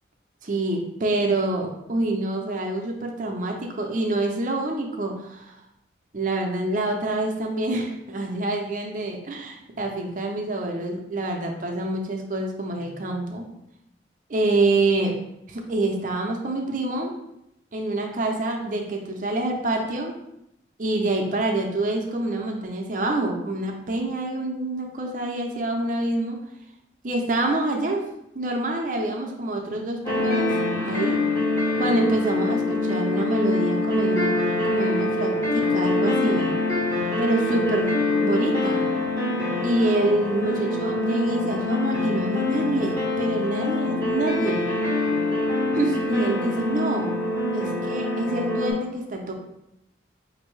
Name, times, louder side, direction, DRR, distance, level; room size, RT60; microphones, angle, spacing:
voice 1, 0.4-5.6 6.1-13.5 14.3-15.2 15.5-17.1 17.7-20.2 20.8-26.4 27.0-28.1 28.3-30.5 30.8-31.2 31.8-34.3 34.6-36.6 37.2-37.9 38.2-38.9 39.6-44.7 45.7-47.1 47.5-49.3, right 2 dB, 45° right, 1 dB, 0.5 m, -26 dB
sound 1, 30.0-48.7, left 2 dB, 15° left, 1.1 m, -24 dB
5.1 x 2.6 x 3.1 m, 0.83 s
head